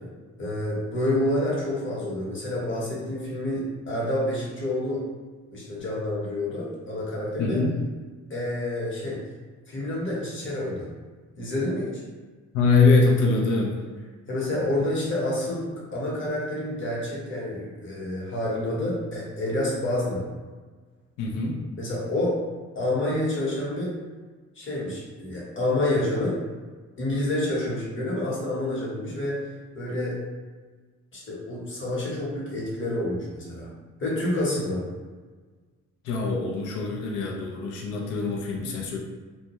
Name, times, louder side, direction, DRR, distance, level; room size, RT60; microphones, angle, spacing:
voice 1, 0.4-5.1 5.5-7.6 8.3-9.2 9.7-10.9 11.3-12.0 14.3-20.3 21.8-22.4 22.7-23.9 24.6-26.4 27.0-29.5 29.7-30.2 31.1-33.7 34.0-34.8, left 1 dB, 40° left, -5 dB, 1.0 m, -28 dB
voice 2, 7.4-7.7 12.5-13.8 21.2-21.6 36.0-39.0, left 3 dB, 80° left, 0 dB, 0.5 m, -23 dB
2.2 x 2.2 x 2.8 m, 1.4 s
cardioid pair, 90°, 30 cm